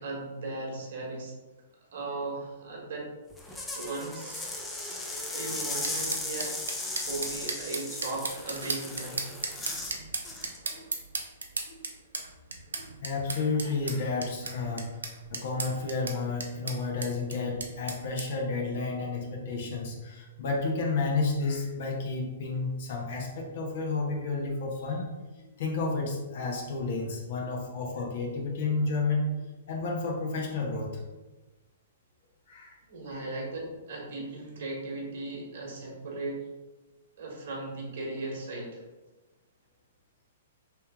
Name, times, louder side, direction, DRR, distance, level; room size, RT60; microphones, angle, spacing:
voice 1, 0.0-1.3 1.9-3.1 3.5-4.5 5.2-9.3 32.9-36.4 37.2-38.8, right 2 dB, 65° right, -1 dB, 1.3 m, -37 dB
sound 1, 3.3-10.0 10.2-10.6, left 2 dB, 10° left, 0.6 m, -36 dB
sound 2, 5.8-18.3, right 3 dB, 85° right, 0.6 m, -36 dB
voice 2, 12.7-14.9 15.3-25.0 25.4-30.9 32.5-32.8 33.1-33.3, left 3 dB, 60° left, -1 dB, 1.0 m, -31 dB
3.3 x 3.1 x 3.5 m, 1.1 s
hypercardioid pair, 125°, 0 cm